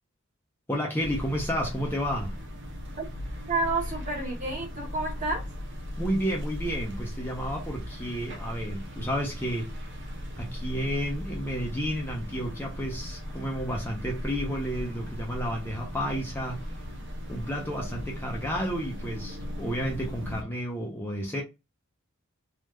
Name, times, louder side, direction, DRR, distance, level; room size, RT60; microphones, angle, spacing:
voice 1, 0.7-2.3 6.0-9.7 10.3-16.7 17.3-21.4, equal, 10° left, 0.8 m, -31 dB
sound 1, 1.0-20.4, equal, 60° right, 0.9 m, -37 dB
voice 2, 3.5-5.4, right 2 dB, 40° right, 1.8 m, -30 dB
3.6 x 2.6 x 3.2 m
head